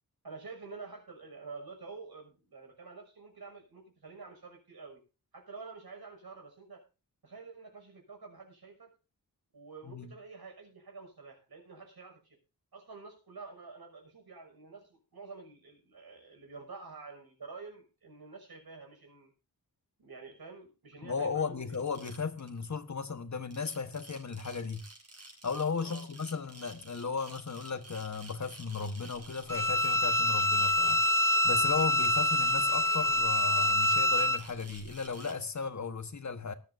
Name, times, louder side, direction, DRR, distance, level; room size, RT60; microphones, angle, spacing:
voice 1, 0.2-5.0 5.3-6.8 7.2-8.9 9.5-12.4 12.7-19.3 20.0-21.8 25.8-26.1, right 4 dB, 80° right, 6.3 m, -48 dB
voice 2, 21.0-24.8 25.4-31.0 31.4-36.5, left 5 dB, 50° left, 1.4 m, -35 dB
sound 1, 21.7-22.6 23.4-35.3, right 2 dB, 45° right, 4.8 m, -51 dB
Bowed string instrument, 29.5-34.4, left 1 dB, 5° left, 0.6 m, -26 dB
19.0 x 12.0 x 2.7 m
wide cardioid pair, 110°, 37 cm